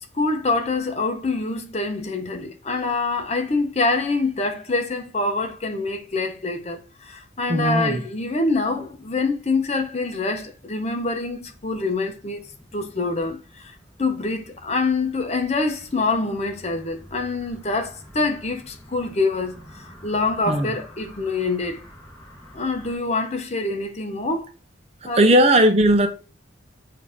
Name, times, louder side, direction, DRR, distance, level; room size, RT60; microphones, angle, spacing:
voice 1, 0.1-12.4 12.7-21.8 22.5-24.5 25.0-25.3, left 3 dB, 35° left, 0.8 m, -25 dB
voice 2, 7.5-8.0 20.5-20.7 25.0-26.1, right 1 dB, 35° right, 0.7 m, -17 dB
sound 1, 8.8-23.0, equal, 15° left, 1.9 m, -49 dB
7.1 x 2.8 x 5.0 m
head